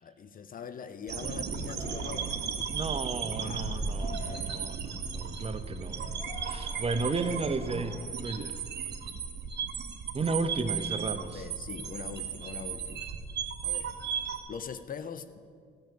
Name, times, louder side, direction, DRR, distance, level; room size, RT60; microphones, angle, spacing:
voice 1, 0.0-2.3 3.4-4.5 11.3-13.1 13.6-13.9 14.5-15.4, left 6 dB, 45° left, 12 dB, 0.6 m, -42 dB
sound 1, 1.1-14.4, right 6 dB, 60° right, 1.1 m, -35 dB
Yell, 1.2-9.0, left 1 dB, 25° left, 1.1 m, -50 dB
voice 2, 2.7-6.0 6.4-8.5 10.1-11.4, right 3 dB, 30° right, 10 dB, 0.7 m, -33 dB
15.0 x 5.2 x 7.7 m, 2.1 s
cardioid pair, 90°, 20 cm